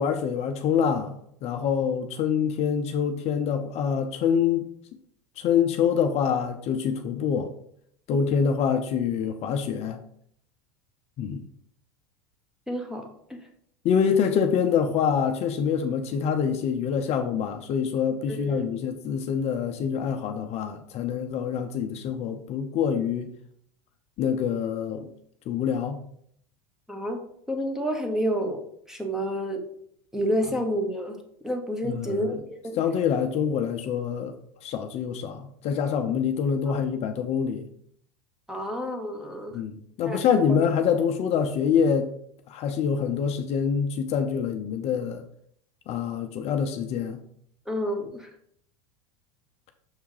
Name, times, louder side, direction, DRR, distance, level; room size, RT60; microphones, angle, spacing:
voice 1, 0.0-4.6 5.4-7.5 8.1-10.0 11.2-11.4 13.8-23.3 24.2-25.1 25.5-26.0 31.8-32.4 32.8-34.3 34.6-37.7 39.5-42.1 42.5-45.2 45.9-47.2, left 7 dB, 45° left, 6 dB, 0.7 m, -25 dB
voice 2, 12.7-13.4 18.3-18.7 26.9-28.6 28.9-29.6 30.1-31.2 31.4-32.8 36.7-36.8 38.5-39.6 40.1-40.6 47.7-48.3, equal, 5° right, 3 dB, 1.2 m, -29 dB
6.6 x 3.5 x 4.9 m, 0.67 s
supercardioid pair, 110°, 15 cm